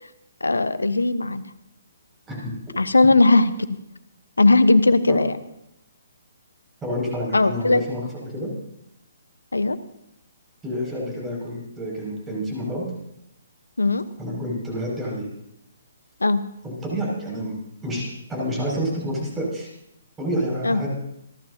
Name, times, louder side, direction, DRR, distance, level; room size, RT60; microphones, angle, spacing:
voice 1, 0.4-1.4 2.8-3.5 4.4-5.3 7.3-7.8 9.5-9.8 13.8-14.0 16.2-16.4 20.6-20.8, left 2 dB, 85° left, 13 dB, 1.0 m, -18 dB
voice 2, 6.8-8.5 10.6-12.9 14.2-15.3 16.6-17.5 17.8-19.7 20.2-20.9, equal, 10° right, -3 dB, 6.2 m, -28 dB
28.5 x 12.0 x 2.8 m, 0.81 s
figure-of-eight pair, 135°, 0 cm